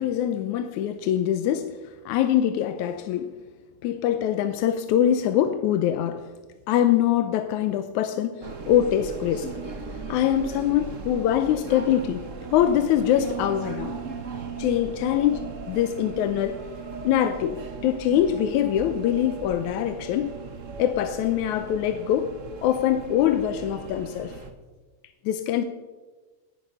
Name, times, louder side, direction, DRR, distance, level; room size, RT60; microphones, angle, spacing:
voice 1, 0.0-1.7 2.1-3.4 3.8-6.3 6.7-9.5 10.1-13.9 14.6-15.4 15.7-16.6 17.0-20.4 20.8-22.3 22.6-24.4 25.3-25.6, left 10 dB, 80° left, 2.1 m, -23 dB
sound 1, 8.4-24.5, right 5 dB, 75° right, 0.7 m, -38 dB
19.5 x 10.5 x 5.5 m
omnidirectional pair, 3.4 m